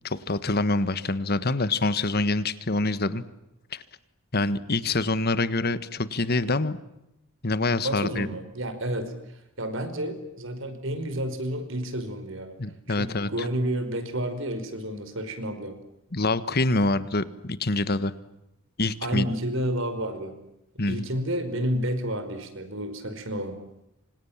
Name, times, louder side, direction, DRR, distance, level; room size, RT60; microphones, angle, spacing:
voice 1, 0.0-3.2 3.7-3.8 4.3-6.8 7.4-8.3 12.6-13.5 16.1-18.1 18.8-19.3 20.8-21.0, left 2 dB, 50° left, 14 dB, 1.6 m, -26 dB
voice 2, 7.8-12.6 12.9-15.8 19.0-20.4 20.8-23.6, right 1 dB, 65° right, 10 dB, 5.2 m, -30 dB
29.5 x 26.5 x 7.5 m, 0.89 s
head